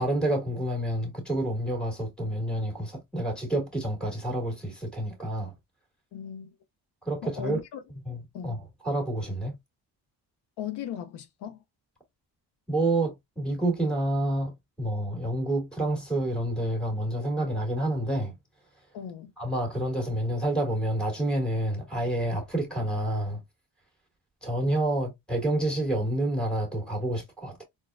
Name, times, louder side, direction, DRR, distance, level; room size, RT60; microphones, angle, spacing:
voice 1, 0.0-5.5 7.0-7.6 8.1-9.6 12.7-14.5 14.8-18.3 19.4-23.4 24.4-27.6, right 1 dB, ahead, 1.7 m, -28 dB
voice 2, 6.1-6.5 7.2-7.8 8.3-8.6 10.6-11.6 18.9-19.3, left 9 dB, 70° left, 0.5 m, -37 dB
4.0 x 2.1 x 2.3 m
cardioid pair, 95°, 42 cm